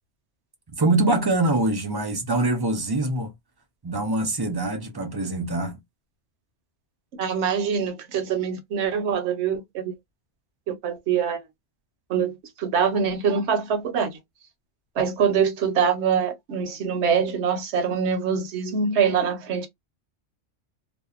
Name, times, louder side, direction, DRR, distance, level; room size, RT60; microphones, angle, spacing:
voice 1, 0.7-3.3 3.8-5.8, right 2 dB, 40° right, 0.3 m, -24 dB
voice 2, 7.1-9.9 10.7-11.4 12.1-14.2 15.0-19.7, right 6 dB, 70° right, 0.9 m, -24 dB
2.6 x 2.1 x 2.3 m
omnidirectional pair, 1.2 m